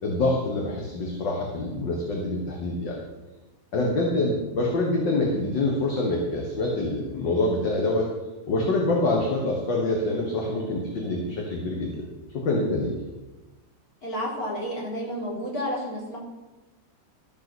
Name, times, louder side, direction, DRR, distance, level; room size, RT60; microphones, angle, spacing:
voice 1, 0.0-3.0 3.7-8.1 8.5-12.1 12.3-12.9, left 2 dB, 65° left, -1 dB, 2.2 m, -26 dB
voice 2, 14.0-16.2, equal, 50° left, -4 dB, 3.9 m, -31 dB
13.5 x 6.9 x 6.2 m, 1.1 s
omnidirectional pair, 2.1 m